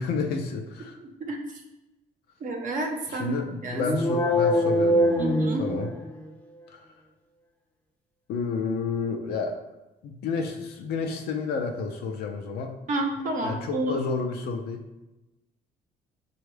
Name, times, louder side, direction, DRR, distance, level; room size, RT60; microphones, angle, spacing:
voice 1, 0.0-1.0 3.1-5.9 6.7-6.9 8.3-9.6 10.0-12.8 13.4-14.8, left 4 dB, 70° left, 3 dB, 0.5 m, -30 dB
voice 2, 1.0-1.6 2.4-3.8 5.2-5.7 12.9-14.0, right 2 dB, 50° right, 2 dB, 0.7 m, -30 dB
sound 1, 3.7-6.3, left 1 dB, 10° left, 0.5 m, -23 dB
5.2 x 2.3 x 3.2 m, 1.0 s
cardioid pair, 110°, 17 cm